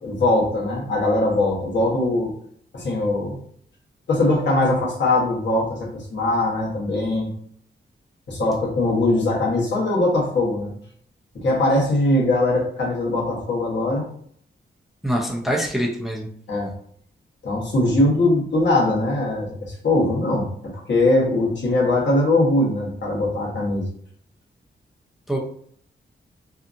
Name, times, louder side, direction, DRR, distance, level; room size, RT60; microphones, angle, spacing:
voice 1, 0.0-2.3 2.7-3.4 4.1-7.3 8.3-10.7 11.3-14.1 16.5-16.7 17.4-23.9, left 2 dB, 65° left, -3 dB, 1.0 m, -21 dB
voice 2, 15.0-16.3 25.3-25.4, equal, ahead, -1 dB, 0.4 m, -24 dB
2.7 x 2.4 x 2.4 m, 0.62 s
wide cardioid pair, 125°, 19 cm